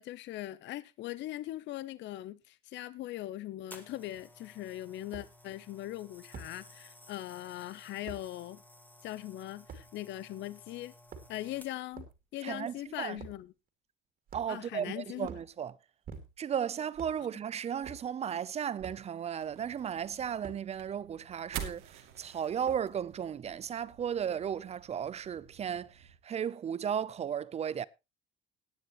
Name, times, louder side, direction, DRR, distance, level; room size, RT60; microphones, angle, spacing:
voice 1, 0.0-8.6 9.0-10.9 11.3-12.1 12.3-13.5 14.5-15.3, left 14 dB, 60° left, 0.7 m, -40 dB
sound 1, 3.7-12.0 12.8-13.0, left 1 dB, 10° left, 1.7 m, -56 dB
sound 2, 4.1-4.2 5.1-5.3 6.3-6.5 8.1-8.2 9.7-9.9 10.9-11.5 11.9-12.2 13.2-13.4 14.3-14.7 15.2-15.5 16.0-16.5 16.9-17.2 17.8-18.1 18.8-19.1 20.4-20.6 21.5-21.7 22.6-23.0, right 5 dB, 45° right, 2.6 m, -46 dB
voice 2, 12.4-13.2 14.3-15.7 16.4-27.9, right 8 dB, 30° right, 0.5 m, -35 dB
sound 3, 19.4-26.2, right 8 dB, 90° right, 2.4 m, -48 dB
18.5 x 9.5 x 3.0 m
cardioid pair, 155°, 21 cm